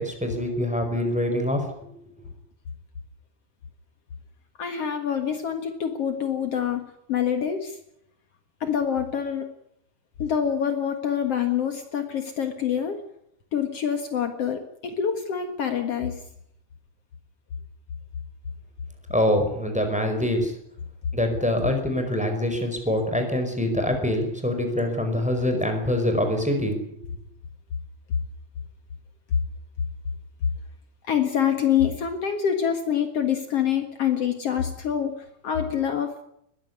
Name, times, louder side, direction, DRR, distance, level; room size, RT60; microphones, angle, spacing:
voice 1, 0.0-1.9 19.1-20.5 21.1-26.8, left 1 dB, ahead, 5 dB, 4.3 m, -25 dB
voice 2, 4.6-7.8 8.6-9.5 10.2-13.0 13.5-16.2 31.1-36.1, left 8 dB, 85° left, 7 dB, 1.3 m, -26 dB
21.0 x 14.5 x 9.7 m, 0.74 s
omnidirectional pair, 5.5 m